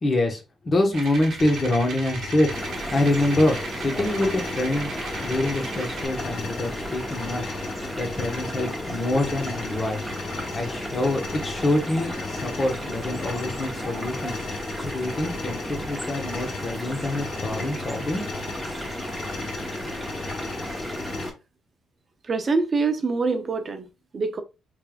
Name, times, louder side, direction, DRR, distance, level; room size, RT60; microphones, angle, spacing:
voice 1, 0.0-2.5 2.9-4.9 5.2-7.4 7.9-10.1 10.5-14.4 14.8-18.3, left 1 dB, 35° left, 1.1 m, -25 dB
sound 1, 0.9-6.1, right 4 dB, 65° right, 0.9 m, -37 dB
sound 2, 1.4-21.3, left 5 dB, 65° left, 0.8 m, -38 dB
sound 3, 2.5-21.3, equal, ahead, 1.0 m, -33 dB
voice 2, 22.2-23.9 24.1-24.4, right 4 dB, 40° right, 0.5 m, -24 dB
3.4 x 3.2 x 2.4 m
cardioid pair, 90°, 0 cm